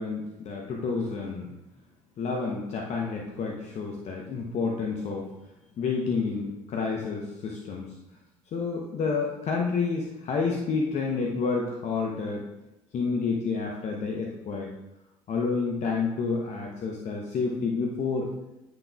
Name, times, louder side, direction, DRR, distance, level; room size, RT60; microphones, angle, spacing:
voice 1, 0.0-1.5 2.2-5.3 5.8-8.0 8.5-12.5 12.9-14.8 15.3-18.3, left 4 dB, 40° left, 0 dB, 0.9 m, -29 dB
10.0 x 6.1 x 2.4 m, 0.95 s
figure-of-eight pair, 60°, 17 cm